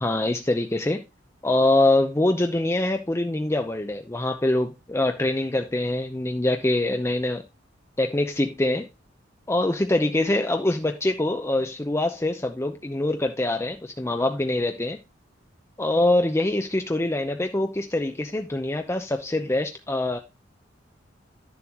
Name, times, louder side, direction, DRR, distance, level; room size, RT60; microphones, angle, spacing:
voice 1, 0.0-1.0 1.4-7.4 8.0-8.9 9.5-15.0 15.8-20.2, left 1 dB, 15° left, 0.7 m, -24 dB
10.5 x 7.1 x 2.9 m
head